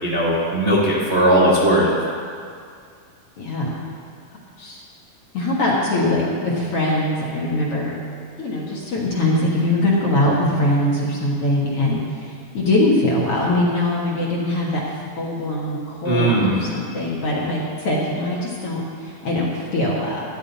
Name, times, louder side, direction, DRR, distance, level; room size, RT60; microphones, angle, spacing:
voice 1, 0.0-1.9 16.1-16.5, right 1 dB, 30° right, -7 dB, 1.2 m, -18 dB
voice 2, 3.4-3.7 4.6-4.8 5.3-7.9 8.4-14.8 15.2-20.3, left 1 dB, 50° left, -5 dB, 2.2 m, -22 dB
15.5 x 11.5 x 4.2 m, 2.2 s
omnidirectional pair, 4.2 m